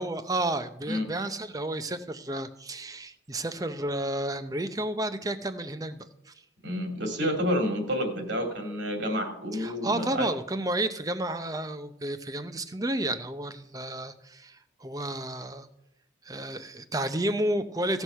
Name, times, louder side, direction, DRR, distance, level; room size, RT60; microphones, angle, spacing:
voice 1, 0.0-6.3 9.5-15.7 16.2-18.0, right 1 dB, 20° right, 10 dB, 0.6 m, -31 dB
voice 2, 6.6-10.3, equal, 70° right, 3 dB, 2.5 m, -29 dB
16.5 x 6.3 x 5.6 m, 0.80 s
head